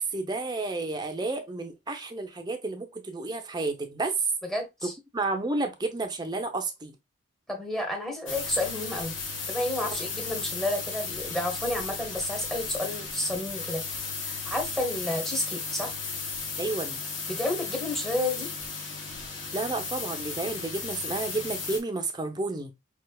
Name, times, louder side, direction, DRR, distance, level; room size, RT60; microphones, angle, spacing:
voice 1, 0.0-4.1 4.8-6.9 16.6-17.0 19.5-22.7, right 2 dB, 20° right, 0.7 m, -31 dB
voice 2, 4.5-4.9 7.5-9.2 9.5-13.8 14.3-15.9 17.3-18.5, left 1 dB, ahead, 1.1 m, -31 dB
sound 1, 8.3-21.8, left 4 dB, 70° left, 1.4 m, -35 dB
5.1 x 3.3 x 2.3 m
head